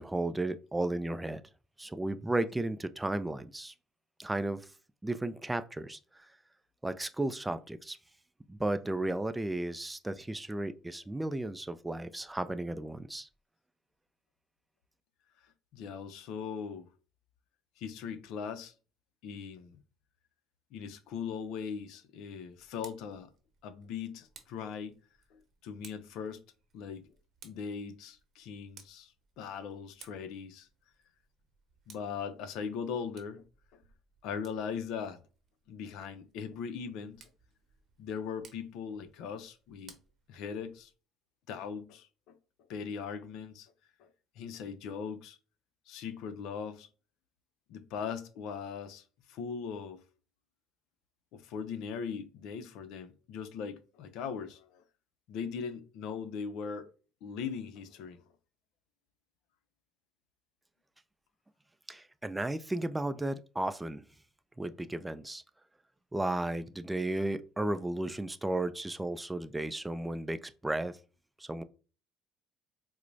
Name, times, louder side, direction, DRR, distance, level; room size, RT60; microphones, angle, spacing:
voice 1, 0.0-1.4 1.8-3.7 4.2-4.6 5.0-6.0 6.8-8.0 8.5-13.3 61.9-64.0 64.6-65.4 66.1-71.0 71.4-71.6, right 2 dB, 10° right, 0.3 m, -34 dB
voice 2, 15.7-16.9 17.8-18.7 19.2-19.8 20.7-23.3 23.6-25.0 25.3-26.4 26.7-27.1 27.4-30.7 31.9-33.4 33.7-33.8 34.2-35.2 35.7-37.2 38.0-39.9 40.3-40.9 41.5-42.4 42.7-43.7 44.0-44.1 44.4-45.4 45.9-46.9 47.7-50.0 51.3-54.8 55.3-56.9 57.2-58.2, left 6 dB, 70° left, 0.5 m, -40 dB
Tick, 22.5-40.9, right 6 dB, 50° right, 0.7 m, -61 dB
4.4 x 2.0 x 2.6 m
supercardioid pair, 90°, 0 cm